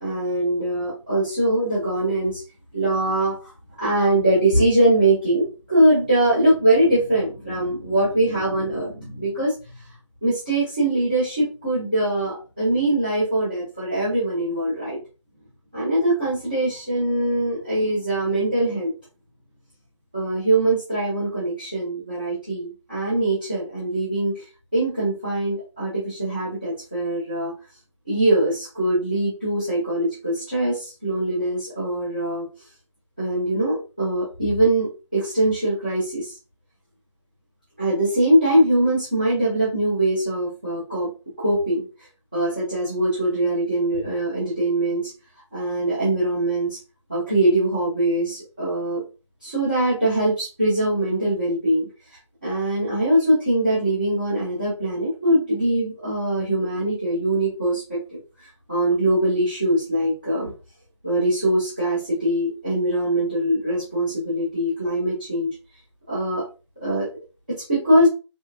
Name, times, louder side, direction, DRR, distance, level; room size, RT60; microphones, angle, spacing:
voice 1, 0.0-2.4 2.7-3.5 3.8-9.5 10.2-15.0 15.7-18.9 20.1-24.4 24.7-27.5 28.1-32.5 33.2-36.3 37.8-41.1 41.4-41.8 42.3-45.1 45.5-46.8 47.1-49.0 49.4-51.9 52.4-58.0 58.7-60.5 61.0-65.5 66.1-66.4 66.8-67.1 67.5-68.1, right 1 dB, 15° right, -12 dB, 1.1 m, -22 dB
3.4 x 2.9 x 2.5 m, 0.31 s
figure-of-eight pair, 180°, 16 cm